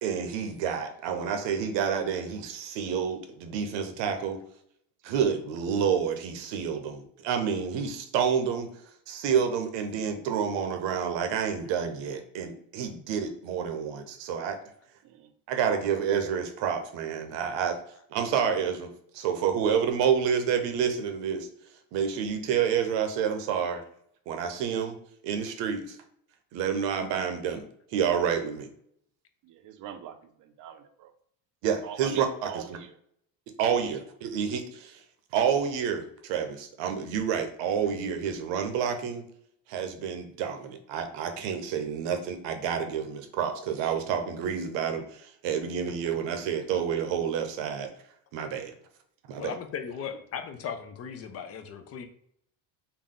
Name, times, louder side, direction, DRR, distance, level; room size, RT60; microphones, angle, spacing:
voice 1, 0.0-4.4 5.0-8.7 9.1-14.6 15.5-17.8 18.1-21.5 21.9-23.8 24.3-25.0 25.2-26.0 26.5-27.6 27.9-28.7 31.6-32.8 33.6-35.0 35.3-39.2 39.7-47.9 48.3-48.7 49.3-49.5, right 7 dB, 75° right, 6 dB, 0.8 m, -29 dB
voice 2, 29.4-31.1 31.8-32.9, right 9 dB, 45° right, 8 dB, 0.6 m, -42 dB
voice 3, 49.4-52.1, left 7 dB, 35° left, 7 dB, 0.5 m, -37 dB
3.8 x 2.2 x 3.7 m, 0.70 s
cardioid pair, 140°, 43 cm